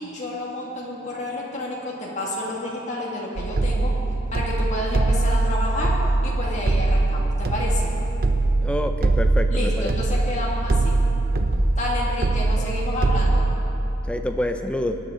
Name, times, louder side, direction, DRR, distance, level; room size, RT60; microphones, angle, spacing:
voice 1, 0.0-4.0 4.3-7.9 9.5-11.0 11.8-13.5, left 2 dB, 35° left, -4 dB, 2.1 m, -30 dB
sound 1, 3.4-13.6, right 2 dB, 45° right, 0.6 m, -22 dB
voice 2, 8.6-9.9 12.6-12.7 14.1-15.0, left 1 dB, 5° left, 6 dB, 0.4 m, -27 dB
19.5 x 10.0 x 3.8 m, 3.0 s
head